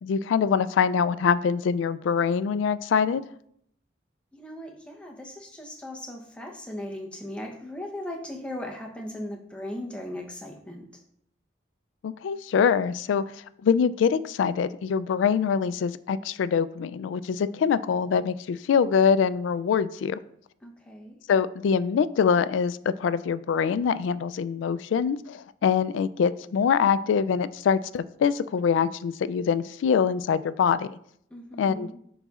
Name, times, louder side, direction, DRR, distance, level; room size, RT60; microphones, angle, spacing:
voice 1, 0.0-3.2 12.0-13.2 13.6-20.2 21.3-31.0 31.6-31.9, left 6 dB, 85° left, 15 dB, 0.3 m, -24 dB
voice 2, 4.3-11.0 20.6-21.2 31.3-32.0, left 1 dB, 5° left, 1 dB, 0.8 m, -38 dB
11.0 x 4.0 x 2.4 m, 0.70 s
head